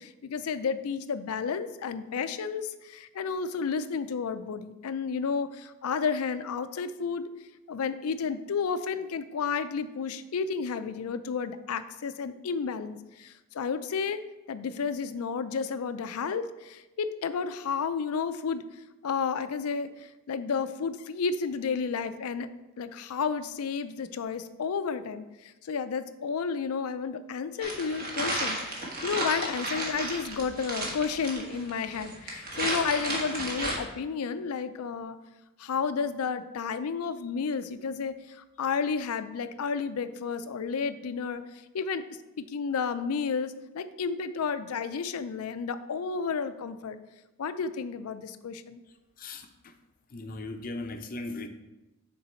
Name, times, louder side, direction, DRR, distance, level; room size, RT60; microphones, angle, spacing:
voice 1, 0.0-7.3 7.7-14.2 14.5-18.6 19.0-22.5 22.8-35.2 35.6-41.4 41.7-42.0 42.4-47.0 47.4-48.8, left 5 dB, 90° left, 12 dB, 0.4 m, -32 dB
sound 1, 27.6-33.7, right 1 dB, 45° right, 1.4 m, -33 dB
voice 2, 49.2-49.8 50.1-51.5, left 2 dB, 40° left, 7 dB, 0.5 m, -38 dB
6.7 x 3.9 x 4.3 m, 1.0 s
head